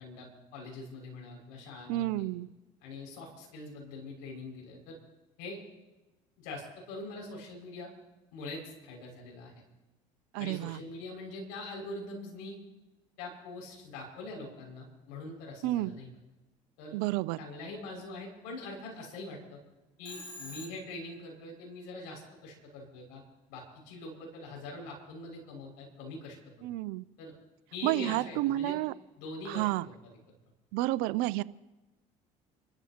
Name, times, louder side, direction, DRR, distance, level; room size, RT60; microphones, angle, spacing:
voice 1, 0.0-2.3 2.8-5.0 5.4-5.6 6.4-7.9 8.3-9.5 10.4-12.6 13.2-16.1 16.8-16.9 17.4-19.6 20.0-23.2 23.5-26.7 27.2-27.3 27.7-28.8 29.2-29.9, left 2 dB, 80° left, -1 dB, 6.1 m, -43 dB
voice 2, 1.9-2.5 10.3-10.8 15.6-15.9 16.9-17.4 26.6-27.1 27.8-28.9 29.5-29.9 30.7-31.4, right 17 dB, 75° right, 18 dB, 0.5 m, -30 dB
Telephone, 20.1-21.1, left 1 dB, 30° left, 5.1 m, -46 dB
29.5 x 14.0 x 2.9 m, 1.1 s
supercardioid pair, 75°, 16 cm